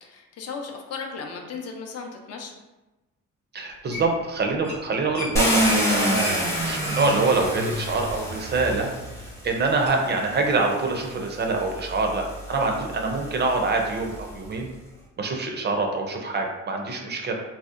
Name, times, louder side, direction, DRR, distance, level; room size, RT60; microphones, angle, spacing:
voice 1, 0.0-2.5, left 5 dB, 55° left, 2 dB, 0.4 m, -36 dB
voice 2, 3.5-8.9 9.4-14.7 15.2-17.3, right 3 dB, 35° right, 2 dB, 0.4 m, -25 dB
sound 1, 3.9-4.3 4.6-4.8 5.1-8.5 8.9-9.0 9.9-10.0, left 1 dB, 80° left, 0.9 m, -36 dB
Car, 5.4-9.5 10.4-10.5 11.0-14.3, equal, 10° left, 0.6 m, -27 dB
2.6 x 2.1 x 2.4 m, 1.1 s
cardioid pair, 90°, 30 cm